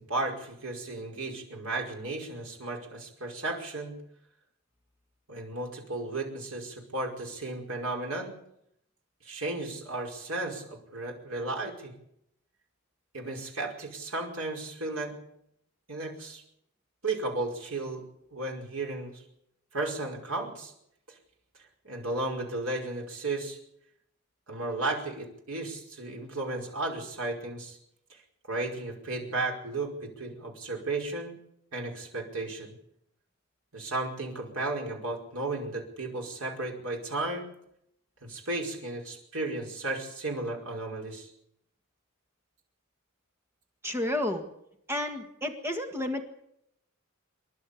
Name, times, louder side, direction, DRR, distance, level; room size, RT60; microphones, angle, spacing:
voice 1, 0.0-3.9 5.3-8.3 9.2-11.9 13.1-15.1 15.9-16.4 17.0-18.0 18.3-19.1 19.7-20.7 21.1-21.2 21.8-23.6 24.5-27.8 28.1-28.2 28.5-31.4 31.7-32.7 33.7-37.5 38.2-41.3, right 2 dB, 75° right, 1 dB, 5.2 m, -34 dB
voice 2, 43.8-44.4 44.9-46.2, left 1 dB, 10° right, 4 dB, 1.8 m, -31 dB
27.5 x 11.5 x 8.5 m, 0.77 s
head